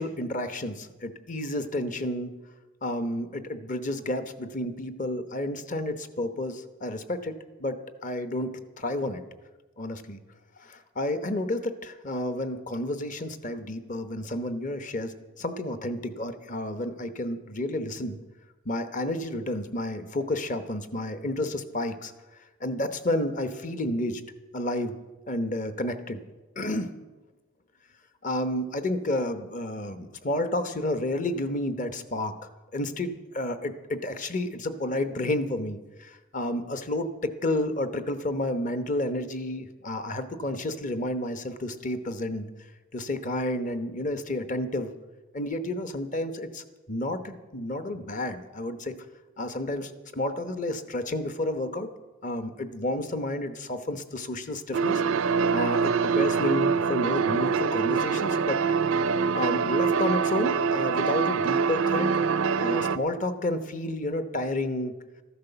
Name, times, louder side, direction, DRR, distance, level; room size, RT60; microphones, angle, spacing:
voice 1, 0.0-2.3 2.8-9.2 9.8-10.2 10.6-18.2 18.6-22.1 22.6-24.2 24.5-25.0 25.3-26.2 26.6-26.9 28.2-32.4 32.7-42.5 42.9-44.9 45.3-48.9 49.4-51.9 52.2-55.0 55.5-58.6 58.9-59.0 59.3-62.1 62.6-64.9, left 1 dB, 35° left, 10 dB, 0.9 m, -31 dB
sound 1, 54.7-63.0, right 5 dB, 75° right, 0.5 m, -24 dB
14.0 x 11.5 x 6.8 m, 1.2 s
head